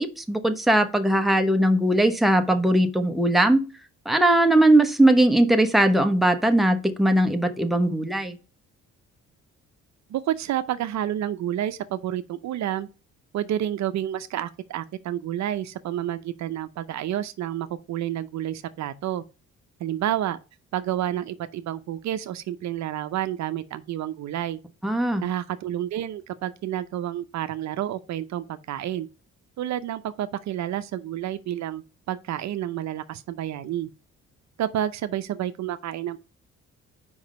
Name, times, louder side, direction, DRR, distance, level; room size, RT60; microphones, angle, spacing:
voice 1, 0.0-3.6 4.1-8.4 24.8-25.2, right 1 dB, ahead, 0.9 m, -20 dB
voice 2, 10.1-12.9 13.3-19.2 19.8-20.4 20.7-24.6 25.2-29.1 29.6-33.9 34.6-36.2, right 11 dB, 65° right, 0.6 m, -29 dB
5.1 x 4.8 x 5.2 m
cardioid pair, 90°, 30 cm